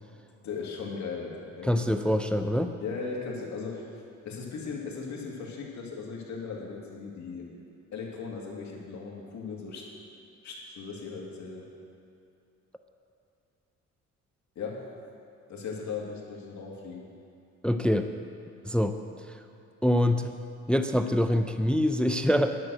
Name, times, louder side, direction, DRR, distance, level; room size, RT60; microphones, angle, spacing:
voice 1, 0.4-2.2 2.8-3.9 4.3-7.5 7.9-9.9 10.4-11.7 14.6-14.8 15.5-17.1, left 5 dB, 65° left, -2 dB, 2.2 m, -38 dB
voice 2, 1.6-2.7 17.6-18.1 18.6-18.9 19.8-20.3 20.7-22.6, equal, 5° left, 8 dB, 0.4 m, -25 dB
10.5 x 6.4 x 7.9 m, 2.6 s
cardioid pair, 90°, 30 cm